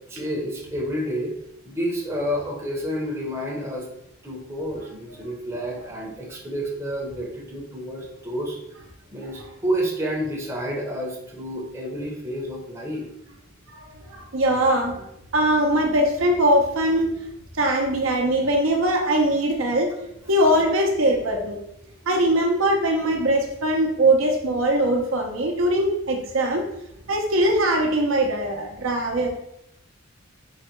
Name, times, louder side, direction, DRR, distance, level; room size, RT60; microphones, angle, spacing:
voice 1, 0.1-1.4 1.6-3.9 4.2-8.6 9.1-13.1, equal, 15° right, -3 dB, 0.7 m, -29 dB
voice 2, 13.7-15.1 15.3-17.2 17.6-19.9 20.3-21.6 22.1-26.7 27.1-29.3, right 1 dB, 65° right, 1 dB, 0.6 m, -21 dB
3.8 x 2.1 x 4.4 m, 0.80 s
head